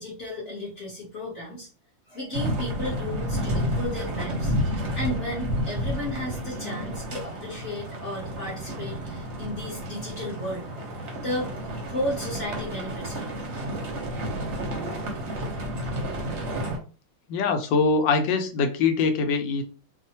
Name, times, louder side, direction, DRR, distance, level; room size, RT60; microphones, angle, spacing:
voice 1, 0.0-1.7 2.1-4.5 4.9-10.7 11.2-11.6 11.8-13.4, left 1 dB, 45° left, -6 dB, 1.1 m, -34 dB
sound 1, 2.3-16.8, equal, 55° right, 0.8 m, -31 dB
voice 2, 17.3-19.6, left 4 dB, 80° left, 6 dB, 1.2 m, -23 dB
3.1 x 2.1 x 2.7 m, 0.35 s
omnidirectional pair, 2.0 m